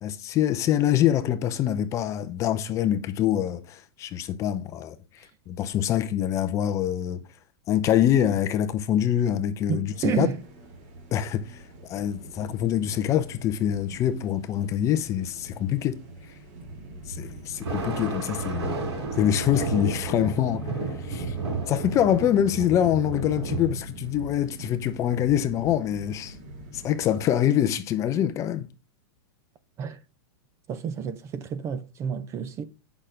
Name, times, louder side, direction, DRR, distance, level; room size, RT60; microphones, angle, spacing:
voice 1, 0.0-7.2 7.7-10.3 11.1-16.0 16.3-16.4 17.1-18.8 19.2-21.4 21.7-26.4 26.7-28.7, left 10 dB, 20° left, 0.6 m, -25 dB
voice 2, 9.7-10.4 29.8-30.0 30.7-32.6, right 7 dB, 20° right, 0.6 m, -30 dB
sound 1, 9.9-27.2, right 1 dB, 40° right, 2.8 m, -42 dB
Thunder, 17.5-23.7, right 3 dB, 85° right, 4.6 m, -32 dB
8.8 x 5.9 x 5.1 m
supercardioid pair, 160°, 14 cm